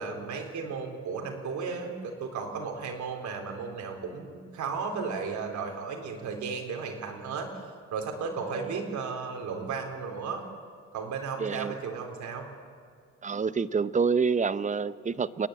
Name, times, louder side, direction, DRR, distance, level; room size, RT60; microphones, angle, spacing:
voice 1, 0.0-7.5 7.9-10.4 10.9-12.5, right 5 dB, 70° right, 3 dB, 3.8 m, -34 dB
voice 2, 8.4-8.8 11.4-11.8 13.2-15.5, right 5 dB, 25° right, 15 dB, 0.7 m, -28 dB
28.5 x 10.5 x 8.7 m, 2.1 s
cardioid pair, 90°, 30 cm